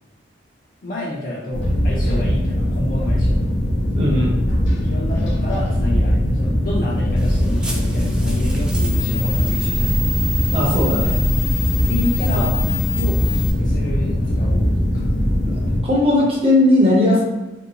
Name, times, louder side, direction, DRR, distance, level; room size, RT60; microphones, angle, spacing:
voice 1, 0.8-3.4 4.8-9.9 11.3-11.4 11.9-12.5 13.0-15.5, left 1 dB, 50° left, -5 dB, 0.5 m, -29 dB
sound 1, 1.5-15.8, equal, 90° left, 0.8 m, -20 dB
voice 2, 3.9-4.3 10.5-11.1 12.3-12.5 15.4-17.2, left 1 dB, 30° right, -3 dB, 0.7 m, -18 dB
sound 2, 7.2-13.5, left 5 dB, 5° right, 0.3 m, -28 dB
3.4 x 2.6 x 2.8 m, 1.1 s
head